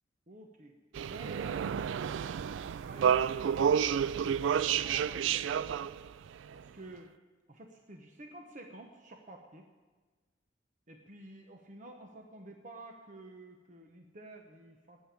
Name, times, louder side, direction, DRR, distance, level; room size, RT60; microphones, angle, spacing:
voice 1, 0.3-0.8 1.0-5.9 6.5-7.1 7.5-9.6 10.9-15.0, right 2 dB, 40° right, 3 dB, 1.0 m, -51 dB
sound 1, 0.9-6.6, right 8 dB, 75° right, 0.3 m, -30 dB
9.3 x 9.2 x 9.8 m, 1.3 s
head